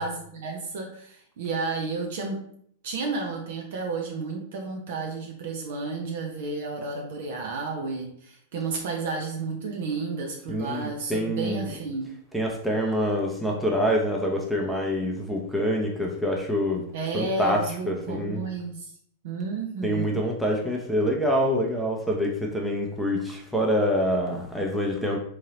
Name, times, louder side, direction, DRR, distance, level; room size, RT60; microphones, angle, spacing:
voice 1, 0.0-2.4 2.8-12.1 16.9-18.9 19.2-20.2, right 4 dB, 60° right, 1 dB, 0.6 m, -32 dB
voice 2, 10.5-11.6 12.3-16.8 17.1-18.4 19.8-25.2, equal, ahead, -1 dB, 0.6 m, -26 dB
3.7 x 3.1 x 2.8 m, 0.64 s
figure-of-eight pair, 95°, 0 cm